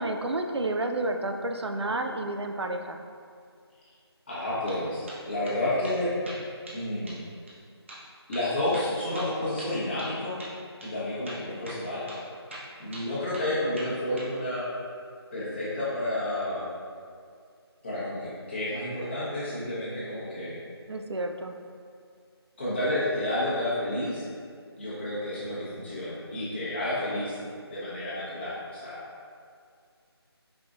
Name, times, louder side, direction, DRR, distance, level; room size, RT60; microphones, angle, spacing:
voice 1, 0.0-3.0 20.9-21.5, right 2 dB, 75° right, 4 dB, 0.5 m, -30 dB
voice 2, 4.3-6.1 6.7-7.2 8.3-10.4 10.8-12.0 12.8-14.7 15.3-16.7 17.8-20.5 22.6-24.3 24.8-27.4 27.7-29.0, left 1 dB, 25° left, -10 dB, 1.1 m, -30 dB
sound 1, 4.4-4.8 5.1-5.6 5.8-6.0 6.3-6.8 7.1-7.2 7.5-7.6 7.9-8.0 8.3-10.1 10.4-10.6 10.8-10.9 11.3-11.8 12.1-12.2 12.5-13.5 13.8-14.3, right 1 dB, 30° right, 0.7 m, -42 dB
4.9 x 4.1 x 2.4 m, 2.2 s
figure-of-eight pair, 165°, 14 cm